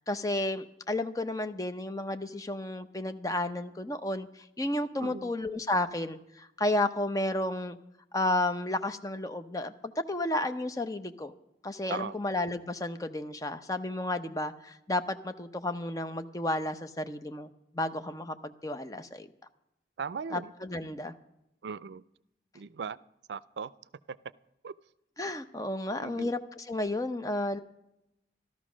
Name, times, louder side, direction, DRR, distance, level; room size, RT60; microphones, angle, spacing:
voice 1, 0.1-4.3 4.6-7.8 8.1-11.3 11.6-17.5 17.7-19.3 20.3-21.1 25.2-27.6, left 1 dB, 20° left, 0.7 m, -32 dB
voice 2, 20.0-20.5 21.6-22.0 22.6-23.0 23.3-23.7 24.6-24.7 26.0-26.3, right 6 dB, 75° right, 0.4 m, -38 dB
13.5 x 13.0 x 6.2 m
head